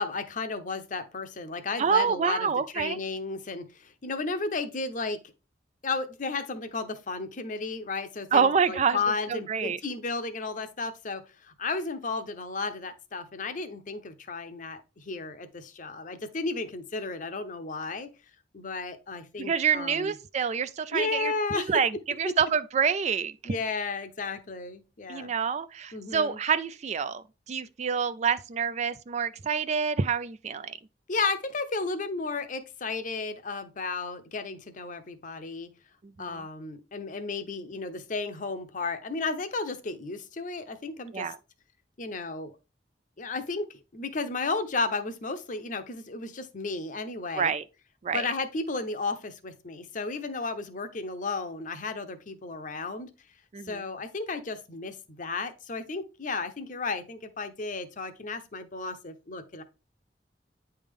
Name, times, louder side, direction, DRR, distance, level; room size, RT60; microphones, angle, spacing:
voice 1, 0.0-5.2 5.8-18.1 18.5-20.1 20.9-21.8 22.3-22.4 23.4-25.3 25.9-26.4 31.1-35.7 36.2-41.3 42.0-42.5 43.2-47.5 48.1-53.1 53.6-59.6, left 3 dB, 45° left, 0.7 m, -33 dB
voice 2, 1.8-3.0 8.3-9.0 9.3-9.8 19.4-23.6 25.1-30.8 36.2-36.4 41.1-41.4 47.4-47.6 48.0-48.2 53.5-53.8, right 6 dB, 40° right, 0.3 m, -27 dB
9.2 x 3.4 x 3.5 m
head